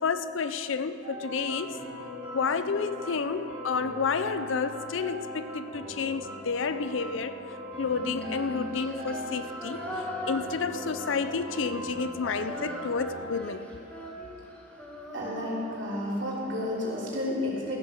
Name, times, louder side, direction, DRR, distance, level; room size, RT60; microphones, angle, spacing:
voice 1, 0.0-1.8 2.3-7.3 7.8-9.8 10.3-13.7, left 5 dB, 70° left, 11 dB, 0.5 m, -30 dB
sound 1, 1.0-13.3, equal, 35° right, 3.6 m, -40 dB
Female singing, 7.9-11.8 12.1-16.3, equal, 10° left, 1.4 m, -40 dB
voice 2, 15.1-17.8, left 1 dB, 65° right, -5 dB, 3.2 m, -31 dB
15.0 x 8.5 x 6.2 m, 2.8 s
head